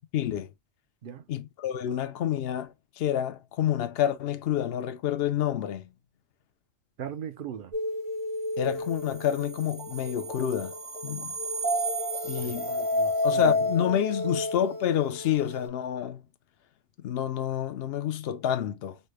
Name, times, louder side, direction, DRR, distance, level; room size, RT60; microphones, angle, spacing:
voice 1, 0.1-0.5 1.3-5.9 8.6-10.7 11.0-11.3 12.2-12.9 13.2-16.2 17.0-19.0, left 10 dB, 65° left, 0.7 m, -28 dB
voice 2, 7.0-7.7 12.4-12.6 12.9-13.7 14.2-14.4, right 8 dB, 55° right, 0.6 m, -39 dB
sound 1, 7.7-15.7, left 1 dB, 75° right, 2.2 m, -30 dB
4.1 x 2.1 x 3.1 m
omnidirectional pair, 1.3 m